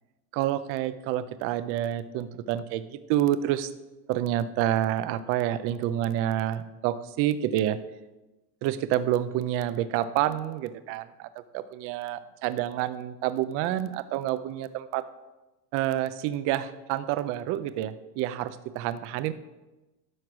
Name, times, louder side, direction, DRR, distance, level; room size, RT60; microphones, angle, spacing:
voice 1, 0.3-3.7 4.1-7.8 8.6-11.3 11.5-15.0 15.7-19.3, right 12 dB, 30° right, 14 dB, 0.4 m, -28 dB
11.0 x 6.4 x 5.8 m, 1.1 s
supercardioid pair, 140°, 48 cm